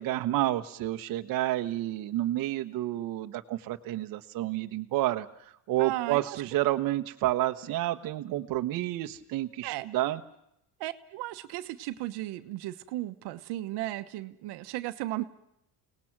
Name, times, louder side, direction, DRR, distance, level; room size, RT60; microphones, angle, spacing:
voice 1, 0.0-5.3 5.7-10.2, right 15 dB, 60° right, 6 dB, 1.1 m, -30 dB
voice 2, 5.8-6.4 9.6-9.9 10.8-15.2, right 16 dB, 80° right, 9 dB, 1.2 m, -35 dB
30.0 x 18.5 x 6.0 m, 0.78 s
cardioid pair, 145°, 39 cm